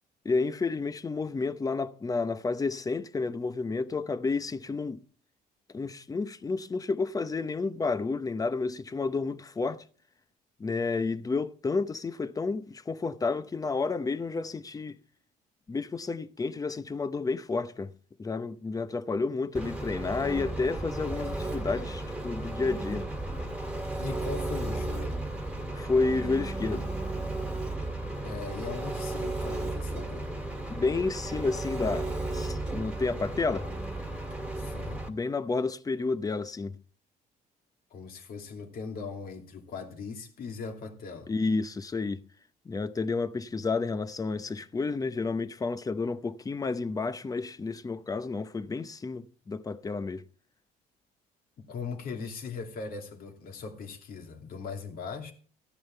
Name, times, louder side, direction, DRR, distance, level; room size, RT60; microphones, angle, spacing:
voice 1, 0.2-5.0 5.7-9.8 10.6-15.0 15.7-17.9 18.2-23.0 25.7-26.9 30.7-33.7 35.1-36.8 41.3-42.2 42.6-50.3, left 4 dB, 20° left, 0.8 m, -31 dB
Engine, 19.5-35.1, right 2 dB, 5° right, 1.9 m, -34 dB
voice 2, 24.0-25.2 28.2-30.3 34.6-35.1 37.9-41.3 51.6-55.3, left 5 dB, 60° left, 2.7 m, -39 dB
14.0 x 10.0 x 4.5 m
cardioid pair, 110°, 17 cm